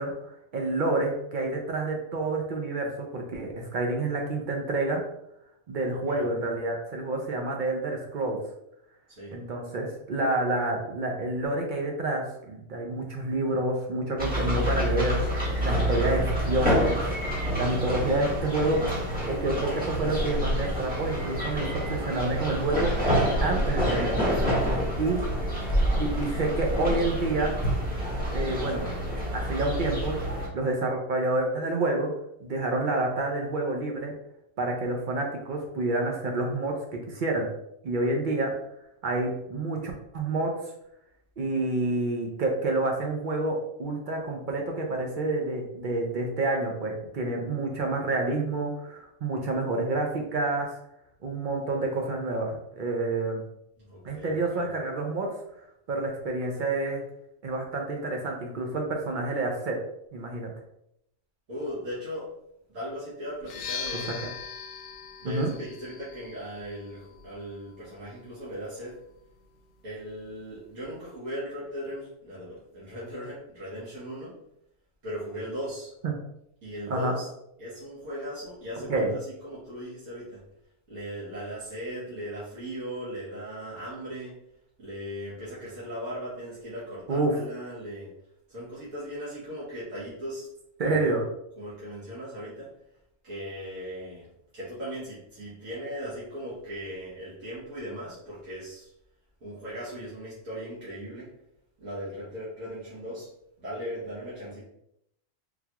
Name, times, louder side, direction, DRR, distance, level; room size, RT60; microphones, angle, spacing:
voice 1, 0.0-5.0 5.7-8.4 9.3-17.1 17.6-18.8 19.2-23.1 23.4-24.3 25.0-25.2 26.0-27.5 28.3-28.9 29.3-30.1 30.5-32.1 32.4-34.1 34.6-36.7 37.1-37.5 37.8-38.5 39.0-40.5 41.4-50.7 51.2-53.4 54.0-55.3 55.9-57.0 57.4-59.8 60.1-60.5 63.9-64.0 65.2-65.5 76.0-76.1 76.9-77.1 78.9-79.1 87.1-87.3 90.8-91.2, right 2 dB, 60° right, 1 dB, 0.5 m, -28 dB
voice 2, 5.9-6.3 9.1-9.4 25.4-25.6 53.8-54.7 61.5-62.3 62.7-64.1 65.2-69.0 69.8-74.4 75.0-75.9 76.6-77.3 77.6-80.4 80.9-84.4 84.8-88.1 88.5-90.5 90.8-91.2 91.6-92.7 93.2-94.3 94.5-98.9 99.4-101.3 101.8-103.3 103.6-104.6, equal, 75° right, -9 dB, 1.5 m, -38 dB
sound 1, 14.2-30.5, equal, 10° right, 0.9 m, -27 dB
sound 2, 63.4-71.2, left 6 dB, 80° left, 0.9 m, -42 dB
3.8 x 2.3 x 2.8 m, 0.78 s
omnidirectional pair, 1.4 m